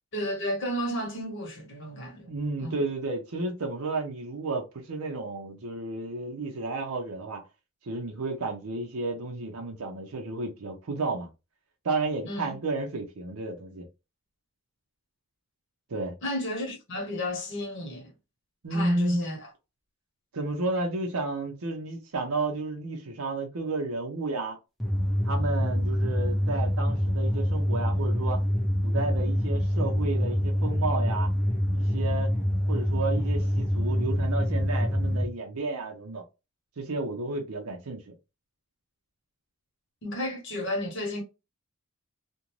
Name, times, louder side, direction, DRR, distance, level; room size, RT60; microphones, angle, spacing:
voice 1, 0.1-2.3 2.6-2.8 12.2-12.5 16.2-18.1 18.7-19.5 40.0-41.2, left 1 dB, 55° left, 1.0 m, -33 dB
voice 2, 2.3-7.4 7.9-11.3 11.8-13.8 15.9-16.1 18.6-19.2 20.3-24.6 25.2-28.4 28.8-31.3 31.7-32.3 32.7-36.2 36.8-38.1, right 2 dB, 80° right, 0.6 m, -32 dB
sound 1, 24.8-35.2, equal, ahead, 0.5 m, -26 dB
2.5 x 2.2 x 3.0 m
head